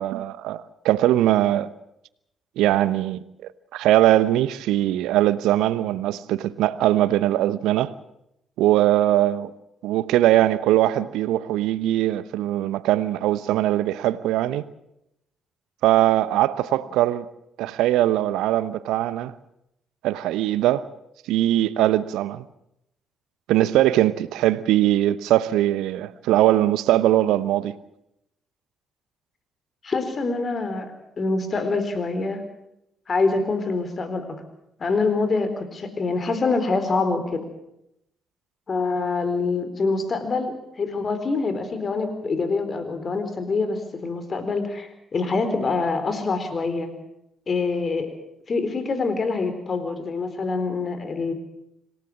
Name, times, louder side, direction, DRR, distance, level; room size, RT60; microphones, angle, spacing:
voice 1, 0.0-1.7 2.6-7.9 8.6-9.5 9.8-14.6 15.8-17.3 17.6-19.3 20.0-20.9 21.3-22.4 23.5-27.7, right 14 dB, 65° right, 0.9 m, -21 dB
voice 2, 29.8-32.4 33.1-34.3 34.8-37.4 38.7-46.9 47.5-48.1 48.5-51.3, left 3 dB, 40° left, 4.2 m, -25 dB
26.5 x 17.0 x 7.5 m
figure-of-eight pair, 40°, 0 cm